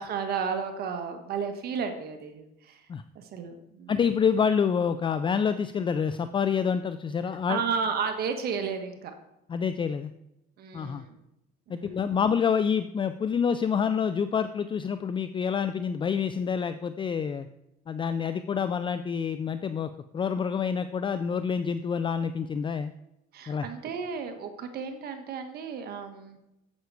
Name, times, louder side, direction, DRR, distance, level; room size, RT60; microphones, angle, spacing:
voice 1, 0.0-2.9 3.1-3.9 7.5-9.1 10.6-11.2 11.7-12.0 23.3-26.5, right 6 dB, 65° right, 6 dB, 1.4 m, -33 dB
voice 2, 3.9-7.6 9.5-10.1 10.7-11.0 11.7-17.5 17.9-22.9 23.5-23.7, left 6 dB, 30° left, 11 dB, 0.4 m, -27 dB
9.6 x 7.9 x 4.8 m, 0.86 s
cardioid pair, 110°, 17 cm